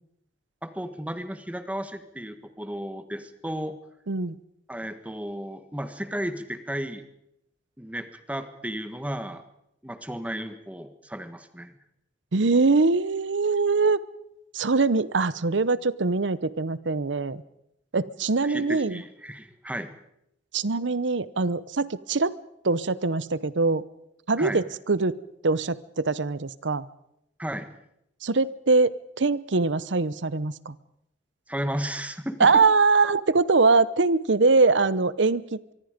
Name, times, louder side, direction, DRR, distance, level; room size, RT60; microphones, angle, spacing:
voice 1, 0.6-3.8 4.7-7.0 7.8-9.4 9.8-11.7 18.4-19.9 24.4-24.6 27.4-27.7 31.5-32.6, equal, 10° right, 9 dB, 1.5 m, -34 dB
voice 2, 12.3-14.0 14.5-17.4 17.9-19.0 20.5-22.3 22.6-23.8 24.3-25.2 25.4-26.9 28.2-30.7 32.4-35.7, right 3 dB, 80° right, 18 dB, 0.9 m, -23 dB
24.0 x 24.0 x 5.2 m, 0.79 s
head